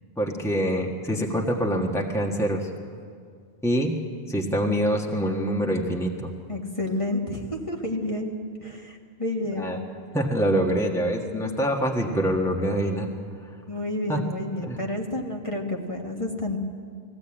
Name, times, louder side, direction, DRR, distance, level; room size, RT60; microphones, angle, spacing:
voice 1, 0.2-2.7 3.6-4.0 4.3-6.3 9.6-9.8 10.1-13.1 14.1-14.2 14.6-14.9, equal, 5° left, 0 dB, 1.5 m, -25 dB
voice 2, 6.5-9.7 13.7-16.6, left 1 dB, 30° left, 0 dB, 1.7 m, -30 dB
20.0 x 16.0 x 8.8 m, 2.1 s
omnidirectional pair, 1.0 m